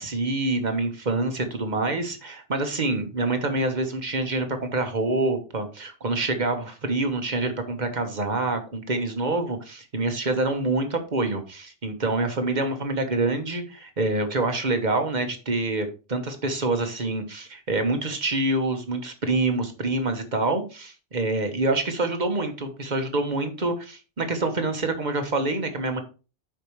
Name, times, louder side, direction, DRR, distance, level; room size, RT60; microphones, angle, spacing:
voice 1, 0.0-26.0, right 2 dB, 40° right, 6 dB, 1.3 m, -26 dB
8.4 x 5.8 x 3.1 m, 0.33 s
omnidirectional pair, 1.2 m